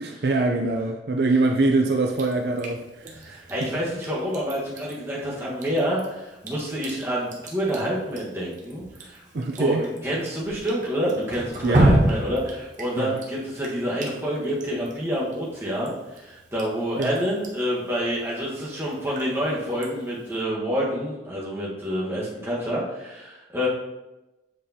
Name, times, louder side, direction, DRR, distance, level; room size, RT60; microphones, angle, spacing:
voice 1, 0.0-3.7 9.3-9.9 11.6-11.9 13.0-13.2 17.0-17.2, right 2 dB, 60° right, 3 dB, 0.5 m, -24 dB
Drip, 2.1-20.4, right 1 dB, 45° right, 1.0 m, -31 dB
voice 2, 3.1-9.2 9.6-9.8 10.0-23.7, equal, 15° right, -6 dB, 1.4 m, -28 dB
8.0 x 4.9 x 2.8 m, 1.0 s
head